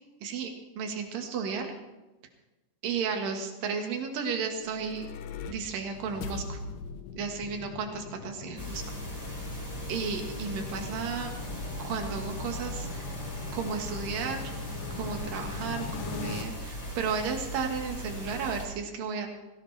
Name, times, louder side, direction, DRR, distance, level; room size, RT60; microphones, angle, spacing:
voice 1, 0.2-1.7 2.8-5.1 5.5-6.6 7.1-8.8 9.9-11.3 11.8-13.1 13.5-14.5 14.9-19.3, right 5 dB, 60° right, 4 dB, 2.9 m, -33 dB
sound 1, 4.4-16.4, left 5 dB, 75° left, 2.0 m, -41 dB
sound 2, 8.6-18.6, equal, 5° left, 4.4 m, -39 dB
20.0 x 17.0 x 3.4 m, 1.1 s
omnidirectional pair, 5.1 m